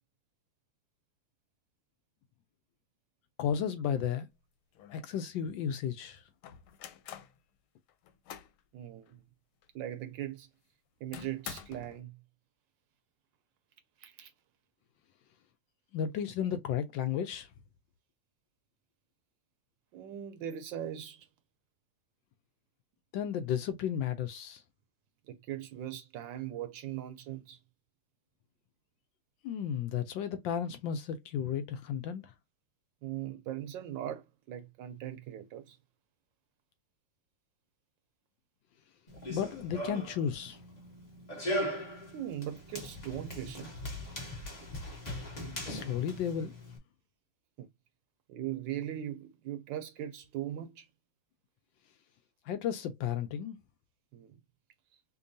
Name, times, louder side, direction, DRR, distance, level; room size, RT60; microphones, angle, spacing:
voice 1, 3.4-4.3 4.9-6.2 15.9-17.5 23.1-24.6 29.4-32.3 39.3-40.6 45.6-46.5 52.5-53.6, left 8 dB, 75° left, 1.2 m, -33 dB
sound 1, 4.3-4.4 4.8-5.5 6.4-7.4 7.9-8.6 9.1-9.2 9.6-9.7 11.1-12.0, left 9 dB, 90° left, 1.5 m, -47 dB
voice 2, 8.7-9.2 9.7-10.5 11.0-12.2 14.0-14.3 19.9-21.3 25.3-27.6 33.0-35.8 42.1-43.7 47.6-47.7 48.3-50.9 54.1-54.4, right 11 dB, 75° right, 1.1 m, -40 dB
Run, 39.1-46.8, equal, 35° left, 0.7 m, -39 dB
5.3 x 2.2 x 2.6 m
omnidirectional pair, 2.3 m